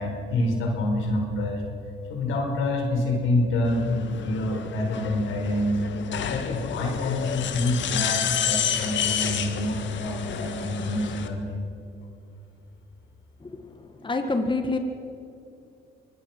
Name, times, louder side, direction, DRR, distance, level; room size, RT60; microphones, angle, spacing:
voice 1, 0.0-1.6 2.1-5.8 6.2-11.7, left 1 dB, 85° left, 2 dB, 4.8 m, -27 dB
sound 1, 3.6-11.3, left 8 dB, 70° left, 1.7 m, -30 dB
voice 2, 14.0-14.8, left 3 dB, 25° left, 6 dB, 1.8 m, -25 dB
24.0 x 19.0 x 6.1 m, 2.7 s
cardioid pair, 90°, 20 cm